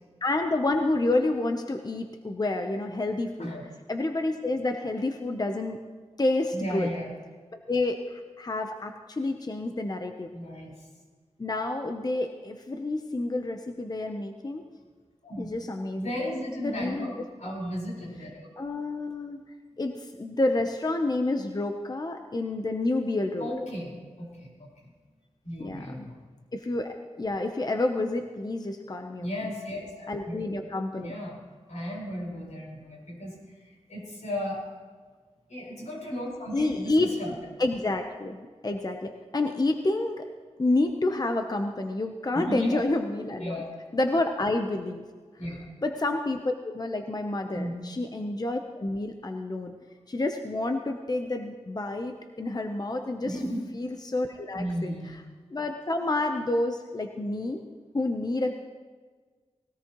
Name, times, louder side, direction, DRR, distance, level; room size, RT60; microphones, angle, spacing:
voice 1, 0.2-3.5 3.9-5.8 6.2-6.9 7.5-10.3 11.4-14.6 15.4-16.1 16.6-17.1 17.4-17.5 18.6-19.4 19.8-23.5 25.6-26.1 26.5-29.3 30.1-31.1 36.5-37.1 37.6-40.2 40.6-43.6 43.9-45.0 45.8-49.7 50.1-53.4 53.7-54.9 55.5-57.6 57.9-58.6, left 2 dB, 35° left, 5 dB, 0.8 m, -29 dB
voice 2, 6.5-7.2 10.3-10.8 15.2-15.5 16.0-18.5 23.4-24.9 25.4-26.2 29.2-30.4 31.0-31.4 31.7-34.7 35.5-37.3 42.3-42.8 43.4-43.6 45.4-45.7 47.5-47.7 53.2-53.6 54.5-55.2, equal, 85° left, -3 dB, 4.9 m, -35 dB
19.5 x 17.5 x 3.1 m, 1.5 s
wide cardioid pair, 95°, 12 cm